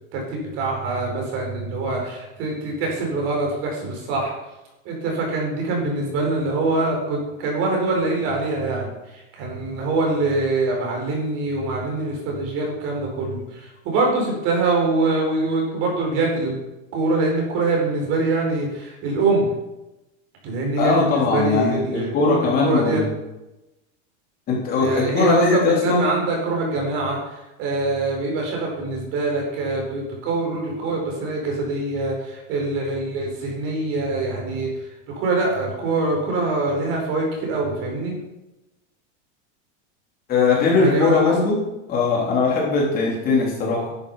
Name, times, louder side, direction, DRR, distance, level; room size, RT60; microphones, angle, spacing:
voice 1, 0.1-4.3 4.8-16.5 16.9-19.5 20.4-23.0 24.8-34.9 35.1-38.1 40.7-41.3, right 3 dB, 35° right, 0 dB, 5.1 m, -24 dB
voice 2, 20.8-23.1 24.5-26.0 40.3-41.6 41.9-43.9, left 4 dB, 25° left, -3 dB, 3.6 m, -20 dB
12.0 x 11.5 x 5.7 m, 0.98 s
supercardioid pair, 175°, 36 cm